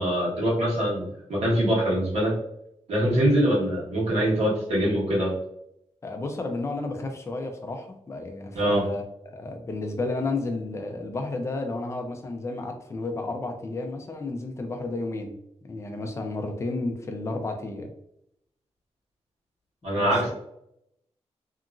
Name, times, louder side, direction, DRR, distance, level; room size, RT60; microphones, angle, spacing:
voice 1, 0.0-2.3 2.9-5.3 8.5-8.9 19.8-20.3, equal, 80° right, -6 dB, 1.4 m, -23 dB
voice 2, 6.0-15.4 15.6-17.9 20.0-20.3, left 2 dB, 25° left, 4 dB, 0.4 m, -32 dB
2.8 x 2.4 x 2.4 m, 0.77 s
wide cardioid pair, 170°, 11 cm